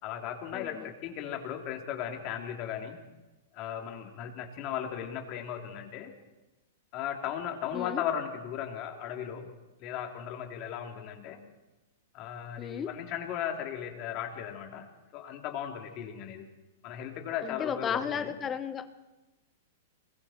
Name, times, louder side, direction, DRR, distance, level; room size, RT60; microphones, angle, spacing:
voice 1, 0.0-3.1 3.5-6.1 6.9-9.5 9.8-11.4 12.1-16.5 16.8-18.4, left 9 dB, 40° left, 3 dB, 3.4 m, -36 dB
voice 2, 0.5-0.9 7.7-8.0 12.6-12.9 17.4-18.9, left 7 dB, 20° left, 11 dB, 1.1 m, -34 dB
26.5 x 22.5 x 4.6 m, 1.0 s
hypercardioid pair, 140°, 0 cm